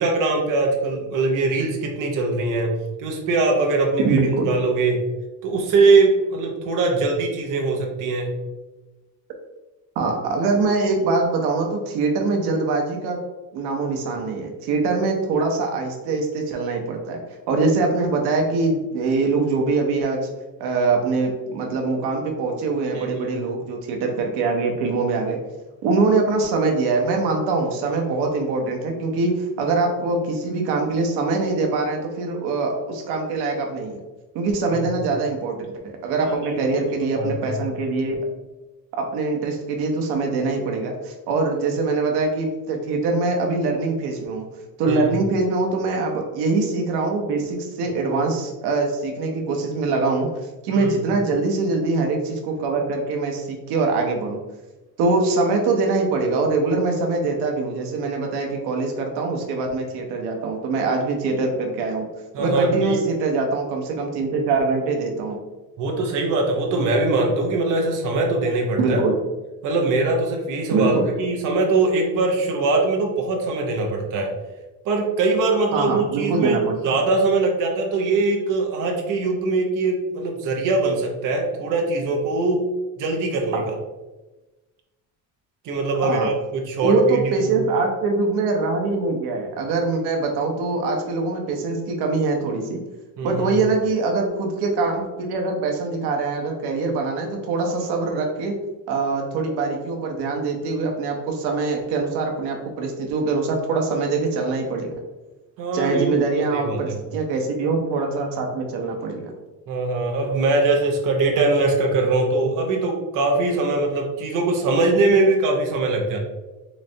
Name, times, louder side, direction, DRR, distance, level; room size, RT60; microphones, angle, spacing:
voice 1, 0.0-5.1 5.4-8.4 22.9-23.4 34.7-34.8 36.3-37.6 44.9-45.1 50.7-50.9 62.3-63.0 65.8-69.0 69.6-74.3 74.8-82.7 83.0-83.6 85.6-87.6 93.2-93.5 105.6-107.0 109.7-116.2, right 3 dB, 55° right, 1 dB, 0.8 m, -22 dB
voice 2, 4.0-4.5 10.0-13.2 13.5-17.2 17.5-20.3 20.6-25.4 25.8-34.0 34.3-38.2 39.0-44.5 44.8-50.3 50.6-54.4 55.0-62.1 62.4-65.4 68.8-69.1 70.7-71.0 75.7-77.0 83.5-83.6 86.0-86.3 86.8-92.8 93.2-98.5 98.9-104.9 105.7-109.3, right 3 dB, 90° right, 2 dB, 0.8 m, -23 dB
4.0 x 3.2 x 2.7 m, 1.1 s
cardioid pair, 155°, 38 cm